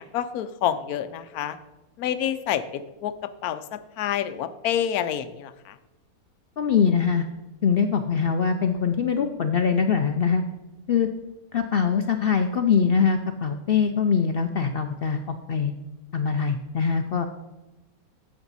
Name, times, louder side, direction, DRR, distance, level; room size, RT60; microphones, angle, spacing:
voice 1, 0.0-1.6 2.0-3.1 3.4-3.6 4.0-5.5, left 10 dB, 85° left, 12 dB, 1.1 m, -27 dB
voice 2, 6.6-7.3 7.6-10.4 10.9-11.1 11.5-15.8 16.1-17.3, left 6 dB, 65° left, 7 dB, 0.5 m, -23 dB
10.5 x 7.6 x 4.0 m, 1.0 s
omnidirectional pair, 1.5 m